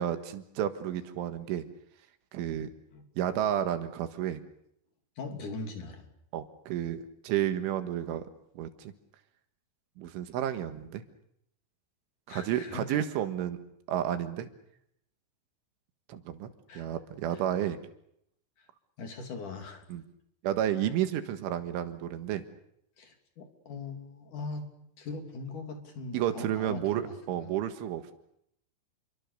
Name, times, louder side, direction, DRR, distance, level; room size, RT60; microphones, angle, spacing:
voice 1, 0.0-1.7 2.3-2.7 3.2-4.4 6.3-8.3 8.6-8.9 10.0-11.0 12.3-13.6 13.9-14.5 16.1-17.8 19.9-20.0 20.4-22.4 26.1-28.0, right 11 dB, 80° right, 9 dB, 4.0 m, -31 dB
voice 2, 5.2-6.1 12.3-13.0 16.7-16.9 17.3-17.4 18.6-18.7 19.0-19.8 23.0-24.7 25.0-27.5, left 3 dB, 45° left, 4 dB, 4.1 m, -41 dB
29.5 x 23.5 x 6.8 m, 0.76 s
omnidirectional pair, 5.5 m